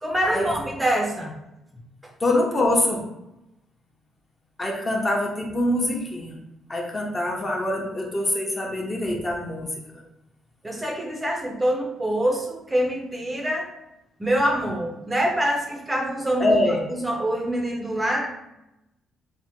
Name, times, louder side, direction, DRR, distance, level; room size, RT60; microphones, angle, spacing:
voice 1, 0.0-1.3 10.6-13.7 14.2-16.6 16.9-18.3, right 1 dB, 15° right, 0 dB, 0.5 m, -25 dB
voice 2, 2.2-3.0 4.6-6.3 6.7-9.7 16.4-16.8, left 1 dB, 25° left, 0 dB, 0.7 m, -24 dB
3.2 x 2.1 x 2.9 m, 0.90 s
cardioid pair, 90°, 0 cm